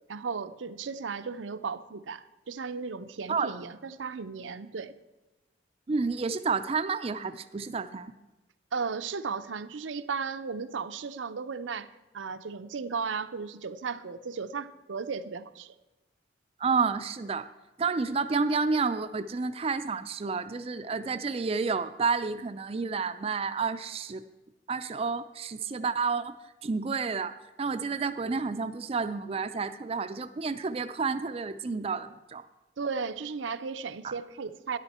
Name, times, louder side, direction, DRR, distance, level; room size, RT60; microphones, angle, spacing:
voice 1, 0.1-4.9 8.7-11.9 12.1-15.7 32.8-34.8, right 5 dB, 85° right, 10 dB, 0.6 m, -35 dB
voice 2, 5.9-8.1 16.6-17.5 17.8-24.2 24.7-26.4 26.6-32.5 34.0-34.1, right 4 dB, 30° right, 9 dB, 0.4 m, -30 dB
12.5 x 10.5 x 4.3 m, 1.1 s
head